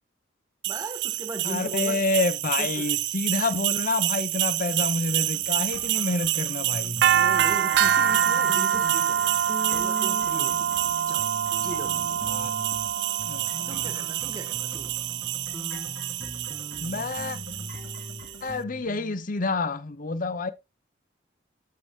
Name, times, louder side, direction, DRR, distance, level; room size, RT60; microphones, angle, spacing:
voice 1, 0.6-2.0 2.6-2.9 7.1-11.3 11.6-12.4 13.7-14.9, right 1 dB, 20° right, 1.4 m, -38 dB
sound 1, 0.6-18.4, right 11 dB, 60° right, 0.3 m, -26 dB
voice 2, 1.4-7.1 12.3-12.5 13.2-13.9 16.8-17.4 18.4-20.5, left 3 dB, 45° left, 0.7 m, -28 dB
sound 2, 4.7-18.5, left 2 dB, 85° left, 2.1 m, -47 dB
sound 3, 6.9-7.6 7.8-12.9 13.2-19.2, left 1 dB, 5° left, 1.0 m, -41 dB
8.2 x 6.7 x 2.7 m
head